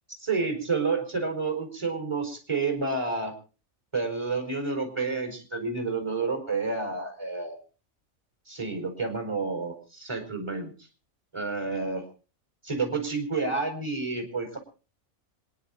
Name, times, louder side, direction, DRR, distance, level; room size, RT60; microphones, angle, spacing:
voice 1, 0.2-3.3 3.9-7.6 8.5-10.7 11.3-12.1 12.6-14.6, right 4 dB, 20° right, 4 dB, 4.7 m, -30 dB
26.5 x 10.5 x 4.2 m, 0.35 s
omnidirectional pair, 1.4 m